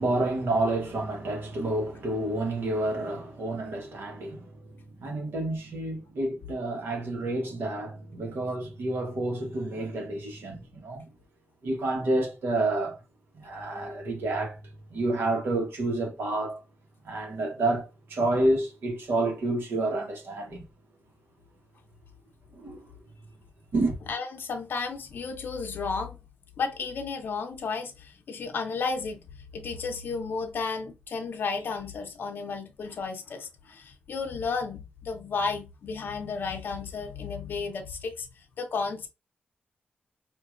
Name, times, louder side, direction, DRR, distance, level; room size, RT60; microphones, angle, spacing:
voice 1, 0.0-11.1 11.6-13.0 13.3-16.6 17.0-20.6 22.5-22.8 23.7-24.0, right 2 dB, 90° right, 1.2 m, -29 dB
voice 2, 24.1-26.2 26.6-29.3 29.5-39.1, left 4 dB, 65° left, 0.6 m, -33 dB
4.6 x 2.5 x 2.4 m
wide cardioid pair, 155°, 4 cm